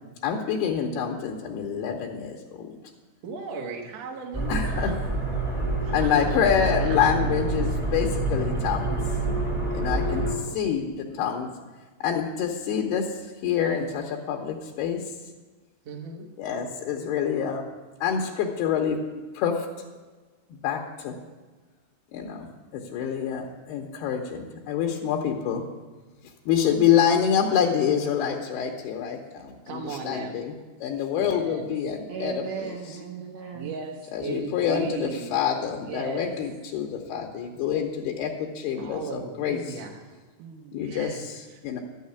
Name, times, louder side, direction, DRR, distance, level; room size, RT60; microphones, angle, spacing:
voice 1, 0.2-2.7 4.5-4.9 5.9-9.0 9.7-10.3 10.5-11.5 12.0-13.1 13.4-15.0 16.4-17.7 18.0-19.0 19.3-19.7 20.5-21.1 22.1-22.5 22.7-25.6 26.5-30.5 30.8-32.7 34.1-39.8 40.7-41.8, left 8 dB, 80° left, 0 dB, 2.8 m, -26 dB
voice 2, 3.2-5.0 5.8-7.0 9.8-10.6 15.8-16.3 29.7-30.4 31.1-31.7 33.5-35.3 35.6-36.3 38.8-40.1 40.8-41.2 41.5-41.6, right 5 dB, 60° right, 1 dB, 1.8 m, -37 dB
sound 1, 4.3-10.4, right 2 dB, 10° right, 1.3 m, -27 dB
voice 3, 32.1-33.8 40.4-40.8, right 6 dB, 85° right, 1 dB, 1.8 m, -36 dB
12.5 x 6.5 x 8.2 m, 1.3 s
omnidirectional pair, 4.8 m